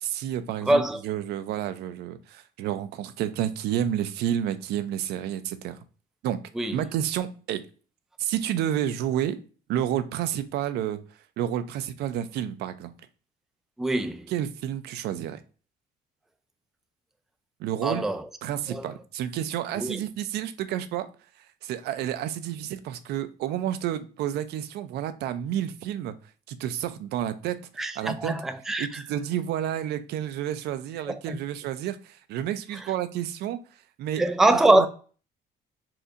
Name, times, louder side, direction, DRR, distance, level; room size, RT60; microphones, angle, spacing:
voice 1, 0.0-5.8 6.2-6.4 6.7-7.6 8.2-9.4 9.7-11.0 11.4-12.9 14.3-15.4 17.6-18.1 18.4-21.1 21.6-26.1 26.5-27.6 28.0-28.3 28.8-33.6 34.0-34.2 34.5-34.9, right 11 dB, 75° right, 0.4 m, -30 dB
voice 2, 0.6-1.0 6.6-6.8 13.8-14.3 17.8-18.2 18.7-18.9 19.8-20.0 27.8-29.0 31.1-31.4 34.2-34.9, right 1 dB, ahead, 0.3 m, -23 dB
4.2 x 2.7 x 2.4 m
cardioid pair, 110°, 17 cm